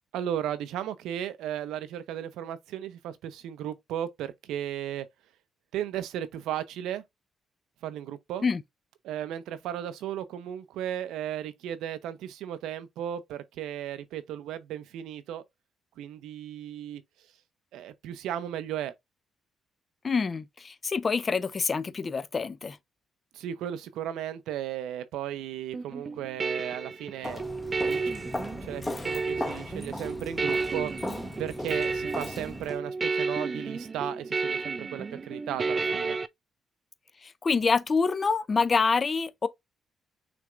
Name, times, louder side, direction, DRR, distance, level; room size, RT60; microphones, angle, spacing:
voice 1, 0.1-5.1 5.7-7.0 7.8-8.4 9.0-15.4 16.0-17.0 17.7-18.9 23.3-27.4 27.9-28.3 28.6-36.2, right 10 dB, 90° right, 0.7 m, -35 dB
voice 2, 20.0-22.8 37.2-39.5, left 4 dB, 35° left, 0.5 m, -26 dB
sound 1, 25.7-36.3, right 4 dB, 35° right, 0.4 m, -32 dB
Walk footsteps, 27.2-32.8, left 2 dB, 15° left, 0.9 m, -37 dB
6.2 x 3.4 x 2.5 m
cardioid pair, 90°, 0 cm